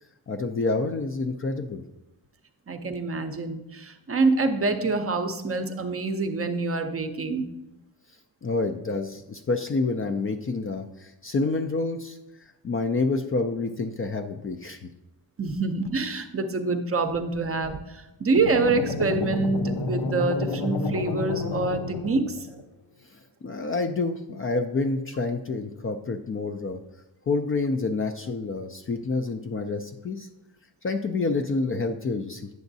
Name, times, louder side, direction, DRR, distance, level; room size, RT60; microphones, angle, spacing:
voice 1, 0.3-1.8 8.4-14.8 23.1-26.8 27.3-30.3 30.8-32.5, left 3 dB, 30° left, 6 dB, 0.4 m, -28 dB
voice 2, 2.7-7.5 15.4-22.5, right 3 dB, 30° right, 6 dB, 0.6 m, -26 dB
sound 1, 18.3-22.6, left 3 dB, 65° left, 0.9 m, -30 dB
9.3 x 6.9 x 2.7 m, 0.91 s
cardioid pair, 100°, 45 cm